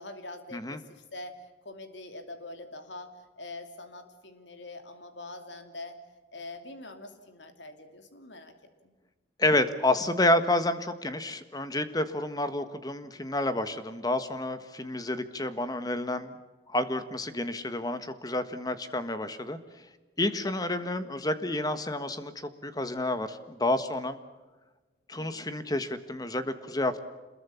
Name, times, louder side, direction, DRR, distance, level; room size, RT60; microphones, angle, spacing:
voice 1, 0.0-6.0 6.3-8.5 8.8-8.9 20.3-20.6 25.2-25.5, left 2 dB, 80° left, 7 dB, 2.9 m, -44 dB
voice 2, 9.4-16.4 16.7-19.6 20.2-24.2 25.1-27.0, left 1 dB, 20° left, 11 dB, 1.5 m, -29 dB
27.0 x 21.5 x 7.2 m, 1.2 s
head